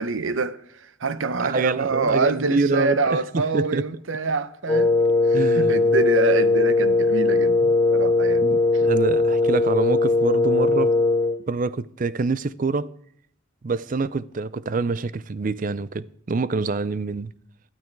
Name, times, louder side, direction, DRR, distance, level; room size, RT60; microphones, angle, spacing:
voice 1, 0.0-4.9 5.2-7.6 7.9-8.5 8.7-8.8, right 4 dB, 70° right, 0.8 m, -25 dB
voice 2, 1.4-3.9 5.3-5.7 7.6-7.7 8.4-10.9 11.5-12.9 13.6-17.3, right 3 dB, 40° right, 0.4 m, -26 dB
Wind instrument woodwind instrument, 4.7-11.4, left 3 dB, 15° left, 0.6 m, -19 dB
12.5 x 12.0 x 4.6 m
head